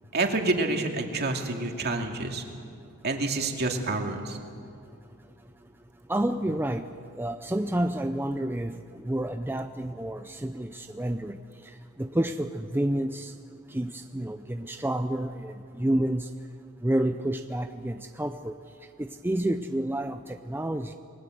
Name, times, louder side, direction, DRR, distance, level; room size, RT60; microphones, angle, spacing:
voice 1, 0.1-2.4 3.0-4.4, right 2 dB, 50° right, 3 dB, 2.5 m, -28 dB
voice 2, 6.1-6.9 7.2-11.4 12.0-13.3 13.7-16.3 16.8-18.5 19.0-20.2 20.5-20.9, right 1 dB, 10° right, 7 dB, 0.6 m, -29 dB
28.0 x 21.0 x 7.9 m, 2.5 s
head